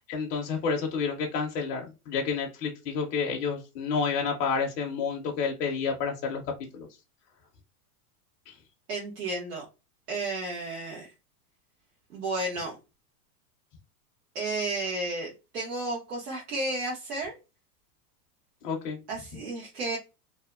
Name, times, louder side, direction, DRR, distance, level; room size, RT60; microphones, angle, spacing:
voice 1, 0.1-6.4 6.7-6.9 8.5-8.6 18.6-19.0, left 5 dB, 20° left, 0 dB, 0.4 m, -29 dB
voice 2, 8.9-9.6 10.1-11.1 12.1-12.8 14.3-17.4 19.1-20.0, right 2 dB, 85° right, -3 dB, 1.1 m, -32 dB
2.7 x 2.2 x 2.3 m, 0.28 s
supercardioid pair, 145°, 46 cm